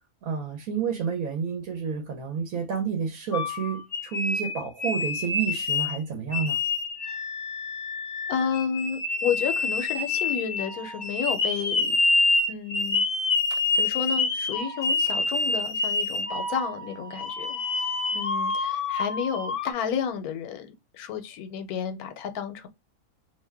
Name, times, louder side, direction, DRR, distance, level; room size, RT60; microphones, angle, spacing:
voice 1, 0.2-6.6, right 6 dB, 70° right, 1.1 m, -30 dB
sound 1, 3.3-6.0 6.3-19.7, left 3 dB, 60° left, 0.9 m, -27 dB
voice 2, 8.3-12.0 12.5-13.0 13.5-17.6 18.1-22.7, left 7 dB, 80° left, 1.1 m, -31 dB
2.7 x 2.1 x 3.3 m
omnidirectional pair, 1.6 m